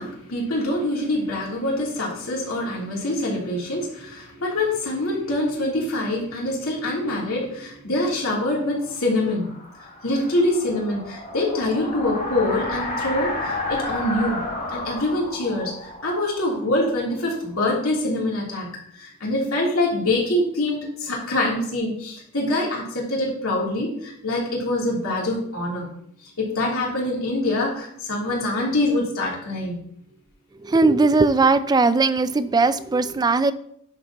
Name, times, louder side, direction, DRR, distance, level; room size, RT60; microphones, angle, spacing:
voice 1, 0.0-9.5 10.0-14.4 14.7-18.7 18.9-25.9 26.4-29.8, left 1 dB, 80° left, -4 dB, 3.1 m, -25 dB
sound 1, 8.7-17.5, left 2 dB, 50° left, 3.7 m, -32 dB
voice 2, 30.6-33.5, right 3 dB, 20° right, 13 dB, 0.3 m, -19 dB
10.5 x 6.7 x 2.9 m, 0.68 s
head